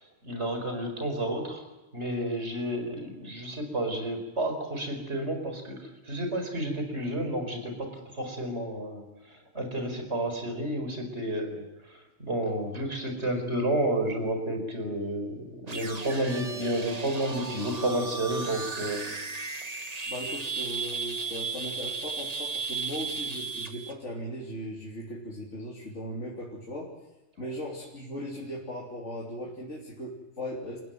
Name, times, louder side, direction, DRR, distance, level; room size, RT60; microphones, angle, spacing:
voice 1, 0.0-1.7 1.9-19.1, right 1 dB, 65° right, 5 dB, 5.0 m, -31 dB
sound 1, 15.6-23.9, right 4 dB, 35° right, 1.4 m, -35 dB
voice 2, 20.1-26.9 27.4-30.8, equal, 75° left, -4 dB, 3.6 m, -38 dB
29.0 x 15.5 x 9.3 m, 0.97 s
omnidirectional pair, 1.2 m